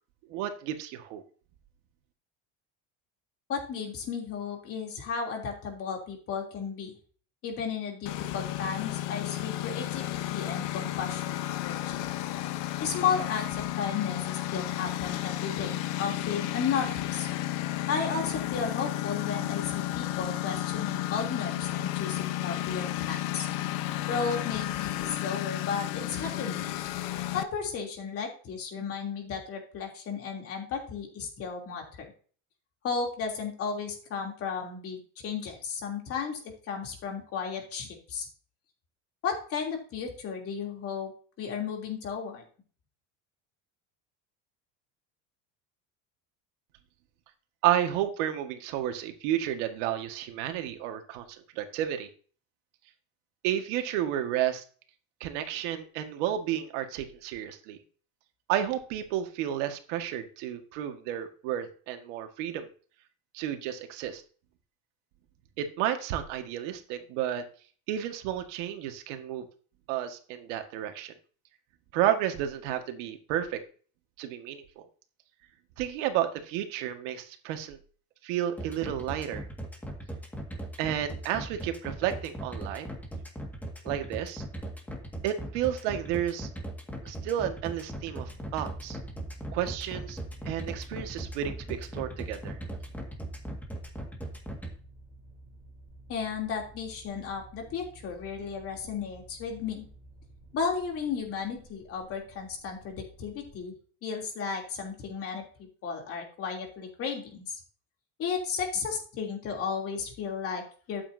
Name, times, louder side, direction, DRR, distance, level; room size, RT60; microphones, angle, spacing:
voice 1, 0.3-1.2 47.6-51.2 51.6-52.1 53.4-54.6 55.2-57.8 58.5-62.7 63.3-64.2 65.6-67.4 67.9-69.5 69.9-71.1 71.9-73.6 74.2-74.6 75.8-77.8 78.2-79.5 80.8-82.9 83.8-84.4 85.2-86.5 87.1-89.0 89.5-90.2 90.5-92.6, right 11 dB, 85° right, 6 dB, 1.8 m, -31 dB
voice 2, 3.5-7.0 7.4-12.0 12.8-17.3 17.9-23.5 24.1-26.7 27.3-32.1 32.8-38.3 39.2-41.1 41.4-42.4 96.1-99.8 100.5-103.7 104.0-107.6 108.2-111.0, left 6 dB, 40° left, 1 dB, 3.2 m, -34 dB
Engine, 8.1-27.4, left 14 dB, 65° left, 1.0 m, -32 dB
sound 1, 78.6-94.7, right 1 dB, 5° left, 1.9 m, -38 dB
sound 2, 87.4-103.6, right 1 dB, 25° right, 3.5 m, -50 dB
12.5 x 8.6 x 2.8 m, 0.42 s
cardioid pair, 165°, 36 cm